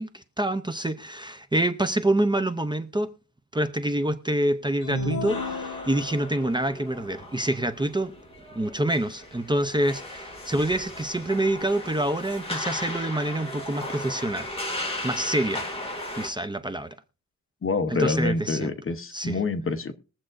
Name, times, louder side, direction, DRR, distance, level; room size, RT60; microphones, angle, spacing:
voice 1, 0.0-3.1 3.5-8.1 8.5-14.5 15.0-15.7 16.1-17.0 17.9-18.7 19.1-19.4, right 1 dB, 15° right, 0.6 m, -26 dB
sound 1, 4.8-6.4, left 2 dB, 70° left, 1.9 m, -32 dB
sound 2, 5.3-16.3, left 1 dB, 20° left, 2.2 m, -36 dB
voice 2, 17.6-19.9, left 3 dB, 45° left, 0.9 m, -26 dB
21.5 x 7.5 x 2.6 m
wide cardioid pair, 145°, 30 cm